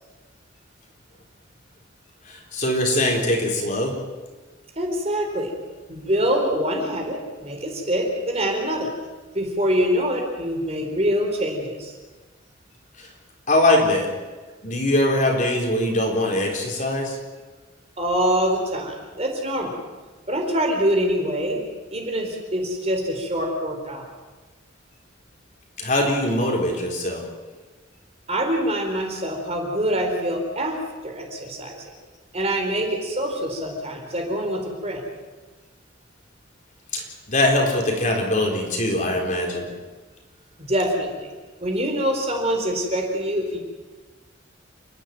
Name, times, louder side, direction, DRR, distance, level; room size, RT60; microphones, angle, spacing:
voice 1, 2.3-3.9 13.0-13.1 13.5-14.1 14.6-17.2 25.8-27.2 36.9-39.7, left 1 dB, 40° left, 0 dB, 4.3 m, -22 dB
voice 2, 4.8-5.5 5.9-8.9 9.3-11.9 18.0-19.8 20.3-21.7 21.9-24.1 28.3-31.9 32.3-35.0 40.6-41.3 41.6-43.6, equal, 30° right, 2 dB, 4.2 m, -25 dB
29.5 x 12.0 x 9.2 m, 1.3 s
head